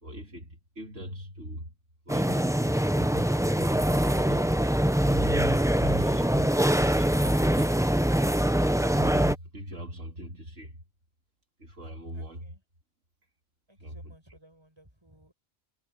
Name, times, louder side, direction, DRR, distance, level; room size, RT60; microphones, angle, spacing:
voice 1, 0.0-1.8 2.1-4.7 5.0-7.7 8.9-10.8 11.6-12.5 13.8-14.2, equal, 85° right, 3.7 m, -41 dB
sound 1, 2.1-9.3, right 1 dB, 5° right, 0.5 m, -24 dB
voice 2, 12.1-12.6 13.7-15.3, right 1 dB, 20° right, 8.2 m, -58 dB
omnidirectional pair, 1.2 m